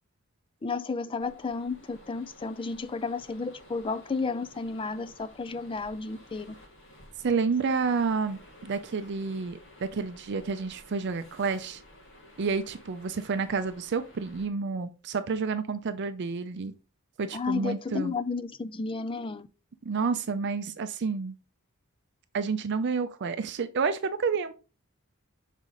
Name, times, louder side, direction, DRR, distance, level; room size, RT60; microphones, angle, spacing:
voice 1, 0.6-6.6 17.3-19.5, left 4 dB, 25° left, 0.4 m, -32 dB
sound 1, 1.2-14.5, left 1 dB, 60° left, 2.1 m, -53 dB
voice 2, 7.2-11.8 12.4-16.7 17.2-18.1 19.8-21.4 22.3-24.5, right 5 dB, 55° right, 0.5 m, -30 dB
6.4 x 4.1 x 3.8 m
head